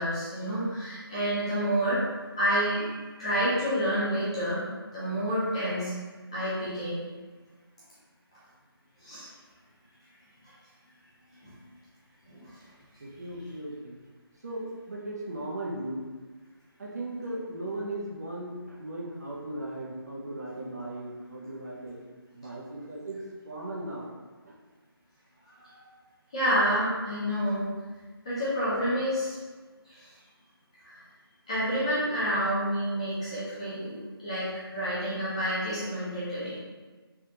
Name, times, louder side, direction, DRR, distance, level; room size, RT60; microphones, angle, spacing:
voice 1, 0.0-2.0 2.4-2.9 3.2-4.6 4.9-5.9 6.3-7.0 9.0-9.3 11.4-11.5 12.3-12.5 25.4-25.8 26.3-27.7 28.2-29.4 29.9-30.1 30.8-31.0 31.5-36.6, equal, 15° left, -11 dB, 0.6 m, -29 dB
voice 2, 13.0-14.0 14.4-16.0 16.8-22.0 22.3-23.2 23.4-24.1 24.4-24.5, right 1 dB, 40° right, -4 dB, 0.5 m, -37 dB
3.4 x 2.2 x 2.8 m, 1.4 s
figure-of-eight pair, 170°, 13 cm